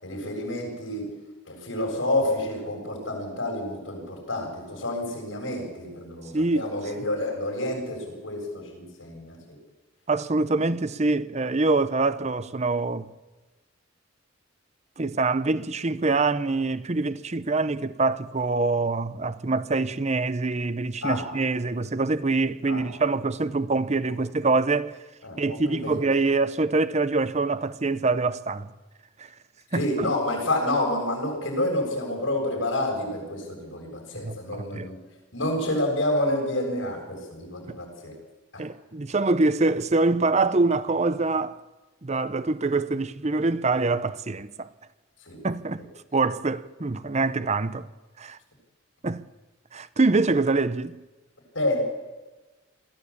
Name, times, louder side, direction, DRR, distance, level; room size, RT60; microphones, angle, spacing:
voice 1, 0.0-1.1 1.5-9.4 21.0-21.2 22.7-22.8 25.2-26.0 29.7-35.0 35.3-38.1 38.5-38.6 45.2-45.4 47.2-47.3 51.5-51.8, left 1 dB, 85° left, 7.6 m, -29 dB
voice 2, 6.3-6.7 10.1-13.1 15.0-25.0 25.4-28.7 29.2-29.3 29.7-30.1 34.2-34.9 38.6-41.6 42.0-44.7 45.4-45.8 46.1-47.9 48.2-48.4 49.0-49.2 49.7-51.0, right 3 dB, 35° right, 0.7 m, -25 dB
22.0 x 14.5 x 8.7 m
head